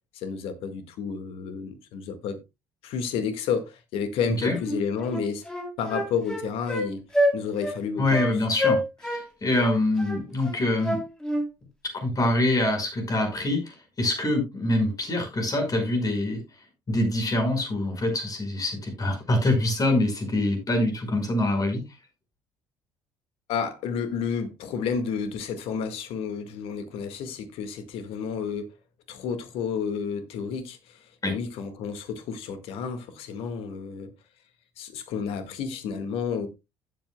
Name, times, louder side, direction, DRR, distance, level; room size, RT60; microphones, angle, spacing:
voice 1, 0.1-2.4 2.8-5.4 5.8-7.0 7.3-8.4 23.5-28.7 29.1-34.1 34.8-36.5, left 6 dB, 60° left, 1.8 m, -31 dB
Wind instrument woodwind instrument, 4.6-4.8 5.1-6.9 7.1-7.4 7.6-7.8 8.1-8.3 8.6-9.2 9.6-11.4, left 1 dB, 5° left, 3.3 m, -26 dB
voice 2, 8.0-11.0 11.9-16.4 16.9-21.8 31.2-31.3, left 1 dB, 35° left, 5.1 m, -25 dB
15.5 x 7.7 x 2.2 m
figure-of-eight pair, 50°, 11 cm